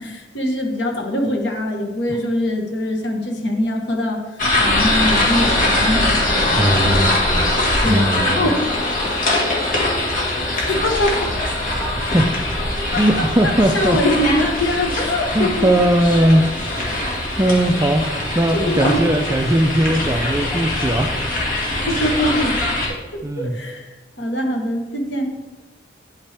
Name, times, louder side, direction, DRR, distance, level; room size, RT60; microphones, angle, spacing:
voice 1, 0.0-7.5 7.8-8.1 8.4-8.7 10.5-11.3 12.9-15.7 16.7-17.1 18.5-19.2 20.0-20.3 21.7-22.6 23.4-23.9 24.2-25.4, left 1 dB, 65° left, 2 dB, 1.3 m, -23 dB
sound 1, 4.4-22.9, left 1 dB, 45° left, 1.6 m, -21 dB
voice 2, 6.5-7.2 7.8-8.5 11.9-12.3 12.8-14.0 15.3-16.4 16.7-16.9 17.4-18.0 18.3-21.1 23.2-23.6, right 1 dB, 15° right, 4 dB, 0.3 m, -18 dB
9.5 x 5.6 x 3.4 m, 1.2 s
head